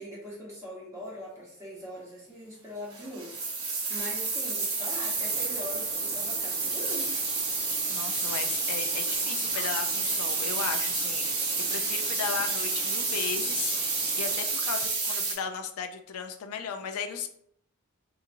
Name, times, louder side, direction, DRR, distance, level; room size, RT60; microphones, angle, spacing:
voice 1, 0.0-3.3 3.9-7.2, left 1 dB, 15° right, -5 dB, 1.1 m, -41 dB
sound 1, 2.9-15.3, right 4 dB, 75° right, 1.1 m, -30 dB
sound 2, 5.1-14.5, equal, 40° right, 1.2 m, -48 dB
voice 2, 7.9-17.3, left 6 dB, 75° left, 6 dB, 0.4 m, -36 dB
3.9 x 2.8 x 2.5 m, 0.68 s
head